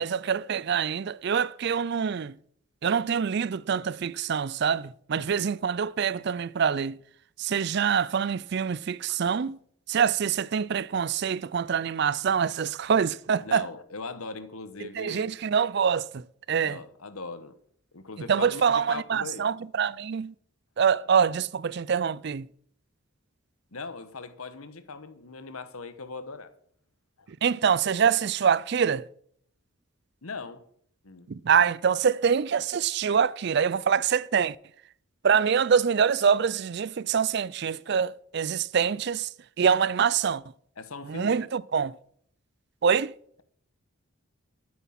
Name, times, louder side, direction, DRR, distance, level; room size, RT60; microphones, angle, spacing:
voice 1, 0.0-2.3 2.8-7.0 7.4-9.6 9.9-13.7 14.8-16.8 18.3-20.3 20.8-22.5 27.4-29.1 31.3-34.6 35.2-39.3 39.6-40.4 41.1-41.9 42.8-43.1, right 7 dB, 50° right, 0.4 m, -25 dB
voice 2, 13.4-15.2 16.6-17.6 17.9-19.5 23.7-26.5 27.2-27.3 30.2-30.6 31.0-31.3 40.8-41.4, left 4 dB, 85° left, 1.3 m, -40 dB
12.5 x 9.4 x 5.9 m
head